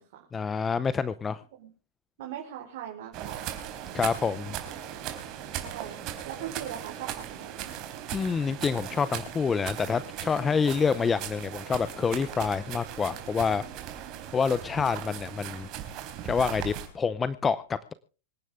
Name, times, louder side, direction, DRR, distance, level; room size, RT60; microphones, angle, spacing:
voice 1, 0.3-1.4 3.9-4.6 8.1-13.6 14.3-15.7 16.2-17.9, left 5 dB, 15° left, 15 dB, 0.6 m, -27 dB
voice 2, 2.2-3.5 5.6-7.8, right 10 dB, 60° right, 0 dB, 4.4 m, -40 dB
sound 1, 3.1-16.9, right 10 dB, 40° right, 3.8 m, -38 dB
25.5 x 10.5 x 3.6 m, 0.36 s
supercardioid pair, 145°, 0 cm